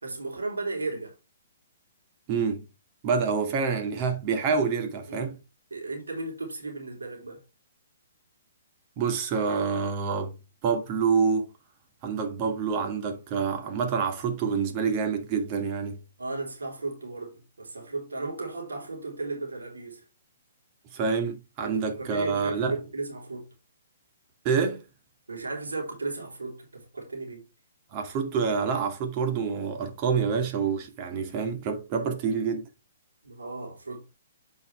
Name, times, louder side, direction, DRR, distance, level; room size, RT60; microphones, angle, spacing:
voice 1, 0.0-1.2 5.1-5.3 5.7-7.4 16.2-20.0 21.6-23.5 25.3-27.5 33.2-34.1, right 3 dB, 90° right, 3.8 m, -35 dB
voice 2, 2.3-2.6 3.0-5.4 9.0-10.4 10.6-11.5 12.0-16.0 20.9-22.8 24.4-24.8 27.9-32.7, right 5 dB, 35° right, 2.1 m, -27 dB
8.6 x 5.6 x 3.3 m
hypercardioid pair, 135°, 0 cm